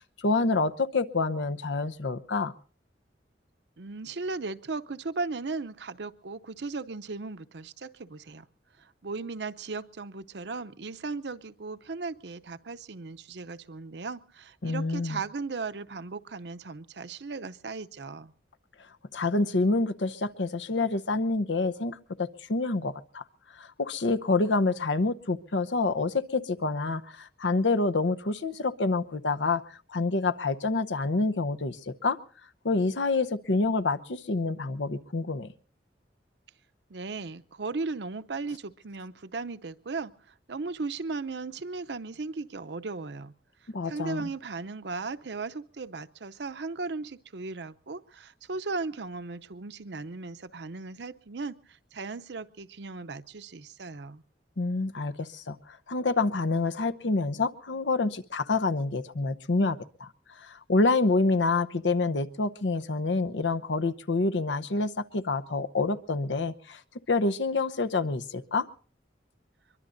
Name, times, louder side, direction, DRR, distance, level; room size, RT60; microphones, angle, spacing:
voice 1, 0.2-2.5 14.6-15.2 19.1-23.2 23.5-32.2 32.6-35.5 43.7-44.3 54.6-60.1 60.4-66.8 67.1-68.7, left 3 dB, 85° left, 11 dB, 0.8 m, -27 dB
voice 2, 3.8-8.5 8.8-18.3 36.9-43.3 43.8-54.2, right 3 dB, 65° right, 12 dB, 0.7 m, -37 dB
23.0 x 23.0 x 2.6 m, 0.43 s
head